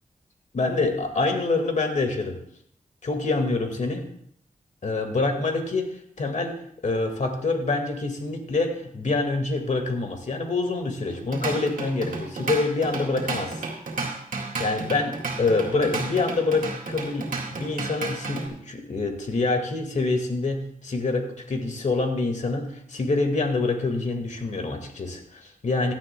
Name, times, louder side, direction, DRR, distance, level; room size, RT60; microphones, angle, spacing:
voice 1, 0.5-2.4 3.0-4.0 4.8-6.6 6.8-13.7 14.6-25.9, left 3 dB, 60° left, 4 dB, 1.8 m, -26 dB
Drum kit / Drum, 11.1-18.5, right 3 dB, 85° right, 2.1 m, -32 dB
16.5 x 11.5 x 2.2 m, 0.65 s
wide cardioid pair, 90°, 14 cm